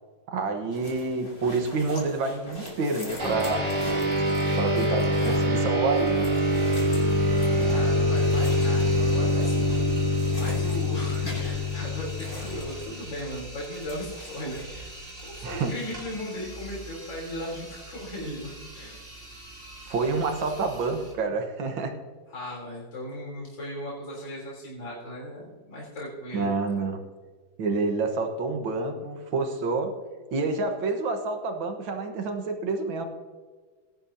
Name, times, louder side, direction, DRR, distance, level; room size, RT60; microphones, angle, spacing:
voice 1, 0.3-3.7 4.6-6.2 15.4-15.7 19.9-21.9 26.3-27.0 27.6-29.9 30.3-33.1, right 3 dB, 75° right, 6 dB, 2.1 m, -28 dB
sound 1, 0.7-13.3 13.6-14.6, left 1 dB, 35° left, 3.3 m, -42 dB
sound 2, 3.2-12.9, left 1 dB, 55° right, 3.3 m, -24 dB
sound 3, 6.4-21.1, right 2 dB, 25° right, 3.5 m, -42 dB
voice 2, 7.6-14.9 15.2-19.0 22.3-26.5, left 1 dB, 65° left, -5 dB, 4.4 m, -37 dB
19.5 x 11.0 x 2.8 m, 1.4 s
omnidirectional pair, 2.2 m